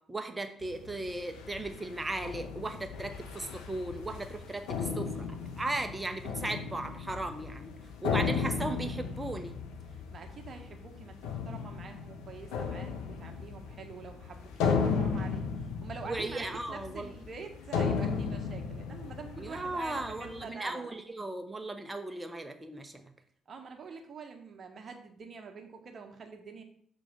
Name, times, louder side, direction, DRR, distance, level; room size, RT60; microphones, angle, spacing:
voice 1, 0.1-5.3 5.6-7.7 8.0-9.6 16.0-17.1 19.4-23.1, right 2 dB, 20° right, 6 dB, 1.1 m, -37 dB
sound 1, 0.6-20.5, left 5 dB, 70° left, 0.7 m, -36 dB
voice 2, 9.9-15.4 15.8-20.9 23.5-26.6, right 5 dB, 45° right, 3 dB, 1.2 m, -46 dB
6.3 x 3.7 x 5.4 m, 0.63 s
figure-of-eight pair, 45°, 0 cm